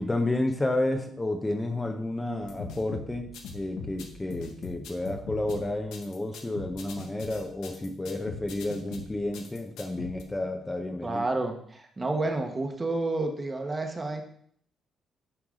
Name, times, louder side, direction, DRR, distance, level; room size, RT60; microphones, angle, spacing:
voice 1, 0.0-11.3, left 2 dB, 15° left, 5 dB, 0.8 m, -31 dB
sound 1, 2.4-10.2, left 5 dB, 85° left, 1.1 m, -41 dB
voice 2, 11.0-14.2, right 2 dB, 25° right, 4 dB, 1.2 m, -30 dB
10.0 x 4.7 x 3.7 m, 0.64 s
cardioid pair, 90°, 0 cm